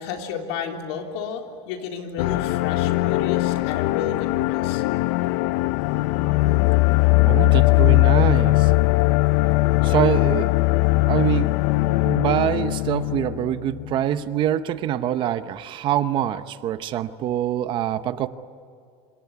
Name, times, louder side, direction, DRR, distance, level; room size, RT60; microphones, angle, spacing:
voice 1, 0.0-4.8, left 6 dB, 75° left, 3 dB, 3.8 m, -32 dB
sound 1, 2.2-14.1, left 20 dB, 60° left, 0.6 m, -20 dB
voice 2, 7.3-8.7 9.8-10.6 11.1-11.6 12.0-18.3, right 11 dB, 35° right, 12 dB, 0.9 m, -24 dB
26.5 x 26.5 x 8.5 m, 2.4 s
cardioid pair, 165°, 13 cm